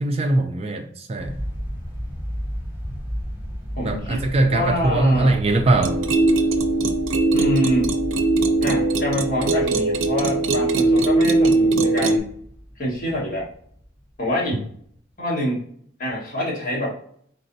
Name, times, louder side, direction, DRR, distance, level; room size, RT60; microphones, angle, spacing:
voice 1, 0.0-1.4 3.8-6.0, right 2 dB, 30° right, 4 dB, 0.4 m, -21 dB
sound 1, 1.2-14.5, equal, 10° right, 1.2 m, -35 dB
voice 2, 3.8-5.4 7.3-7.9 8.6-12.3 12.8-13.5 14.2-14.7 15.2-15.6 16.0-17.0, equal, 45° left, -5 dB, 1.8 m, -26 dB
sound 2, 5.8-12.2, right 2 dB, 80° right, 0.5 m, -20 dB
4.3 x 3.9 x 2.6 m, 0.63 s
head